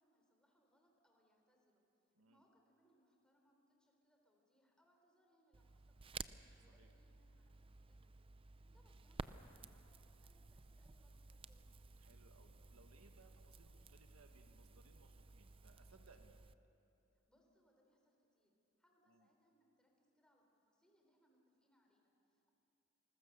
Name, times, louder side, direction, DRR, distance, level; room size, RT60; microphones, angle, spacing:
voice 1, 0.0-6.3 6.6-8.2 8.6-11.7 17.1-22.5, equal, 5° left, 1 dB, 3.8 m, -77 dB
Crackle, 5.5-16.5, right 4 dB, 25° right, 0.5 m, -55 dB
voice 2, 12.0-16.4 19.1-19.3, right 3 dB, 90° right, 5 dB, 1.7 m, -67 dB
27.5 x 21.0 x 6.8 m, 2.9 s
head